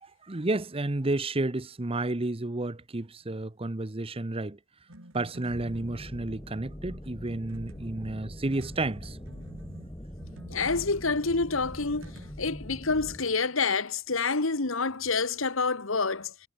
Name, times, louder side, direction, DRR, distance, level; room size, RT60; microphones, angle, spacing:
voice 1, 0.0-4.6 5.1-9.2, right 2 dB, 25° right, 0.9 m, -31 dB
sound 1, 4.9-6.6 7.5-12.3, right 1 dB, 75° right, 5.2 m, -51 dB
sound 2, 5.5-13.2, equal, 15° left, 2.2 m, -43 dB
voice 2, 10.5-12.0 12.4-16.3, left 4 dB, 75° left, 1.7 m, -27 dB
head